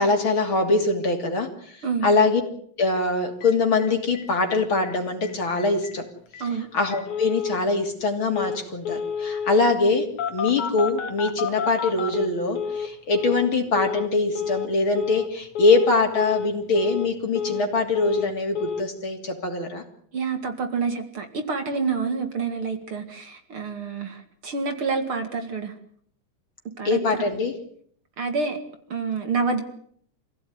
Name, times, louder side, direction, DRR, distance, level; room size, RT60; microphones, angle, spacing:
voice 1, 0.0-2.4 2.8-6.1 6.5-19.8 26.9-27.5, left 3 dB, 45° left, 4 dB, 3.5 m, -23 dB
Telephone, 3.4-3.5 3.8-3.9 4.1-4.2 4.5-4.9 5.2-5.3 5.6-5.9 6.3-6.4 6.9-7.6 8.3-8.6 8.8-9.6 10.2-12.9 13.1-13.5 13.7-14.1 14.3-14.7 14.9-15.3 15.5-15.9 16.1-16.5 16.7-17.7 17.9-18.3 18.5-18.8, left 6 dB, 85° left, 3.4 m, -30 dB
voice 2, 20.1-25.7 26.8-27.2 28.2-28.6 28.9-29.6, right 4 dB, 50° right, 7 dB, 3.0 m, -28 dB
26.0 x 16.5 x 9.6 m, 0.64 s
omnidirectional pair, 3.3 m